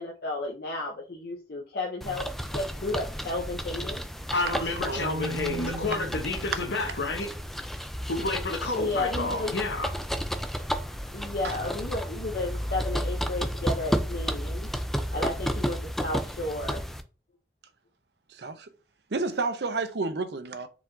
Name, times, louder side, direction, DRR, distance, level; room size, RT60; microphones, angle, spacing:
voice 1, 0.0-4.0 8.7-9.5 10.7-10.8 11.1-14.7 15.1-16.8, left 2 dB, 60° left, 0.7 m, -33 dB
sound 1, 2.0-17.0, equal, ahead, 0.3 m, -32 dB
voice 2, 4.3-7.3 8.1-9.9, left 3 dB, 75° left, 1.0 m, -30 dB
voice 3, 4.9-6.2 11.4-11.6 18.3-18.7 19.1-20.7, right 3 dB, 65° right, 0.6 m, -31 dB
4.7 x 2.4 x 3.8 m
head